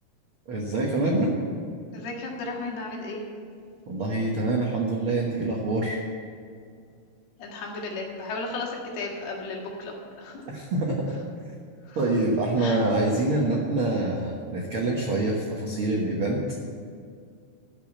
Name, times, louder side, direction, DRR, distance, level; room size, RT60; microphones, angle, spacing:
voice 1, 0.5-1.3 3.9-6.0 10.5-11.0 11.9-16.4, right 2 dB, 75° right, -1 dB, 1.2 m, -25 dB
voice 2, 1.9-3.2 7.4-10.4 11.9-12.0 12.6-12.8, left 3 dB, 90° left, -1 dB, 3.9 m, -34 dB
13.0 x 6.0 x 8.8 m, 2.3 s
omnidirectional pair, 4.4 m